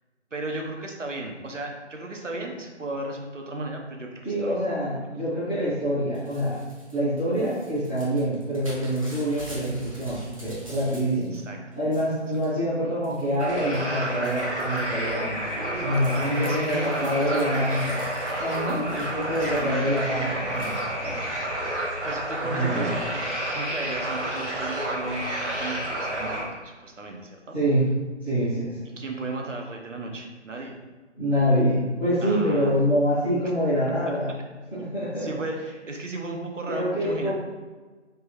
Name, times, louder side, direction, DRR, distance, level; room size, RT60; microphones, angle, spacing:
voice 1, 0.3-4.6 5.0-5.2 11.3-11.7 15.5-17.8 19.4-19.9 22.0-23.1 23.5-27.6 29.0-30.8 32.2-32.8 35.2-35.6 35.9-37.3, right 2 dB, 85° right, 2 dB, 0.8 m, -34 dB
voice 2, 4.2-6.6 6.9-11.3 11.7-15.4 15.7-18.0 18.4-20.7 21.0-21.3 22.5-22.9 27.5-27.8 28.2-28.8 31.2-34.3 34.8-35.3 36.7-37.3, equal, 10° left, -17 dB, 0.7 m, -26 dB
Crumpling crinkling / Tearing, 6.1-11.4 11.7-12.5 13.0-13.4 13.7-20.0 20.6-20.8, equal, 30° right, 0.6 m, -46 dB
sound 1, 13.4-26.4, right 1 dB, 65° right, 1.2 m, -30 dB
3.4 x 2.9 x 3.1 m, 1.3 s
figure-of-eight pair, 155°, 36 cm